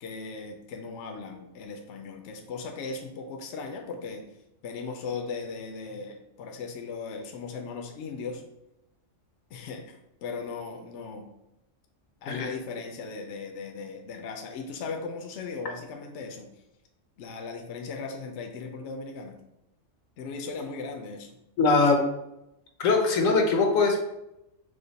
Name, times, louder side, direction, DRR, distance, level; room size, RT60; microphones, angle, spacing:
voice 1, 0.0-4.3 4.6-8.4 9.5-11.3 12.2-16.5 17.2-19.4 20.2-21.3, left 4 dB, 70° left, 4 dB, 0.9 m, -37 dB
voice 2, 21.6-22.0 22.8-24.0, left 3 dB, 85° left, 3 dB, 1.2 m, -22 dB
5.0 x 2.2 x 3.9 m, 0.87 s
omnidirectional pair, 1.3 m